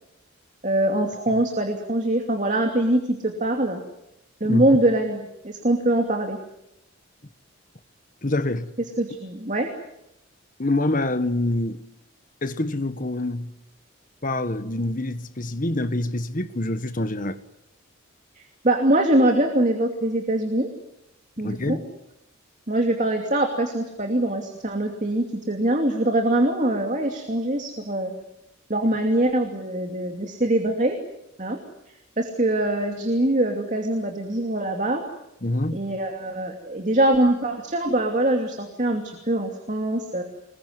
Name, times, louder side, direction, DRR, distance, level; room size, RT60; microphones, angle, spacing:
voice 1, 0.6-3.8 4.4-6.4 9.0-9.7 18.4-20.7 21.4-21.8 22.7-28.1 28.7-31.0 31.4-31.6 32.2-35.0 35.7-40.2, right 1 dB, 35° right, 2.8 m, -23 dB
voice 2, 8.2-8.7 10.6-11.8 12.4-13.5 14.2-17.4 21.4-21.9 35.4-35.8, left 2 dB, 40° left, 1.4 m, -26 dB
27.0 x 21.5 x 9.5 m
head